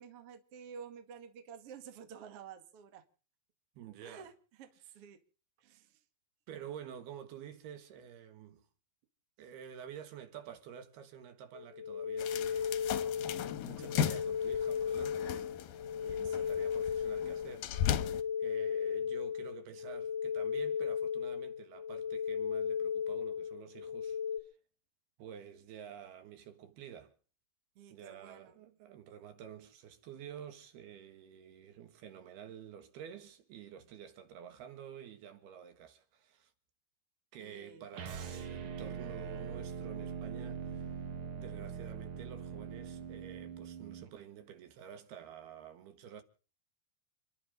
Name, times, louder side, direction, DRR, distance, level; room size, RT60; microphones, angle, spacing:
voice 1, 0.0-3.0 4.0-5.2 5.6-6.0 9.4-9.5 16.2-16.6 27.8-28.6 37.4-37.8, right 7 dB, 45° right, 2.3 m, -51 dB
voice 2, 3.8-4.3 6.5-8.7 9.4-17.7 18.4-24.2 25.2-27.1 27.9-36.5 37.3-40.9 41.4-46.2, right 9 dB, 70° right, 3.4 m, -50 dB
sound 1, 11.5-24.4, left 7 dB, 55° left, 1.3 m, -36 dB
sound 2, 12.2-18.2, left 9 dB, 70° left, 2.4 m, -37 dB
sound 3, 37.9-44.1, right 6 dB, 90° right, 1.2 m, -42 dB
29.5 x 11.5 x 3.9 m
omnidirectional pair, 4.9 m